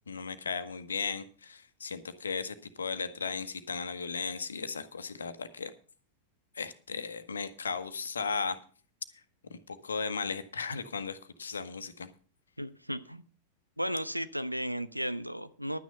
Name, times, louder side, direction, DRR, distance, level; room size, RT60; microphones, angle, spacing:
voice 1, 0.1-5.7 6.5-8.6 9.5-12.1, left 5 dB, 70° left, 1.2 m, -36 dB
voice 2, 12.6-13.2 13.8-15.8, equal, 90° right, 0.7 m, -34 dB
11.5 x 9.4 x 5.5 m
figure-of-eight pair, 90°, 0 cm